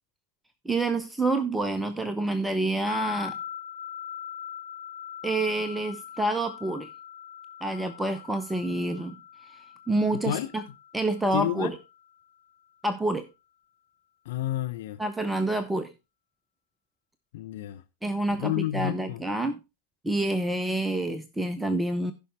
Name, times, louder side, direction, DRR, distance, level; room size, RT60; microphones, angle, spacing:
voice 1, 0.6-3.3 5.2-6.9 7.6-9.2 9.5-9.6 9.9-10.6 10.9-11.8 12.8-13.3 15.0-15.9 18.0-19.6 20.0-22.1, right 2 dB, 5° right, 0.7 m, -28 dB
sound 1, 2.9-12.1, left 10 dB, 70° left, 1.2 m, -42 dB
voice 2, 10.1-10.5 11.3-11.7 14.2-15.0 17.3-17.8 18.4-19.2, left 13 dB, 55° left, 0.8 m, -30 dB
15.5 x 5.5 x 3.2 m
figure-of-eight pair, 90°, 0 cm